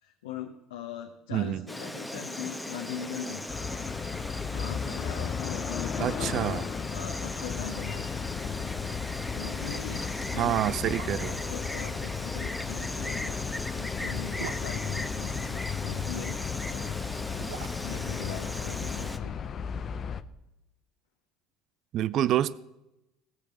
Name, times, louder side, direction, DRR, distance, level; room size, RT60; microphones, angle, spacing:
voice 1, 0.0-3.6 4.5-8.3 9.3-10.1 10.3-10.6 11.4-13.4 13.8-16.4 16.7-17.0 17.8-19.4, left 8 dB, 80° left, 1.1 m, -40 dB
voice 2, 1.3-1.7 6.0-6.7 10.3-11.4 21.9-22.5, right 12 dB, 50° right, 0.5 m, -27 dB
Insect, 1.7-19.2, left 1 dB, 5° left, 1.2 m, -37 dB
sound 1, 3.5-20.2, left 7 dB, 40° left, 0.7 m, -35 dB
sound 2, 7.5-8.2 8.4-8.5 8.9-9.1 9.8-9.9 10.6-11.5 13.0-15.7 16.9-19.2 19.4-19.5, right 9 dB, 70° right, 1.0 m, -45 dB
18.0 x 6.7 x 7.6 m
hypercardioid pair, 65°, 0 cm